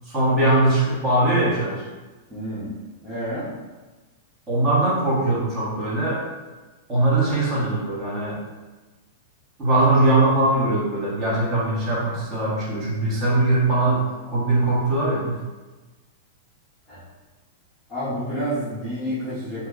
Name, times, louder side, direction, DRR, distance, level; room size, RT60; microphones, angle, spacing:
voice 1, 0.1-1.8 4.5-6.2 6.9-8.4 9.6-15.4, right 2 dB, 20° right, -7 dB, 1.0 m, -21 dB
voice 2, 2.3-2.7 3.0-3.5 16.9-17.0 17.9-19.7, equal, 5° left, -14 dB, 0.7 m, -29 dB
2.9 x 2.2 x 3.6 m, 1.2 s
supercardioid pair, 160°, 0 cm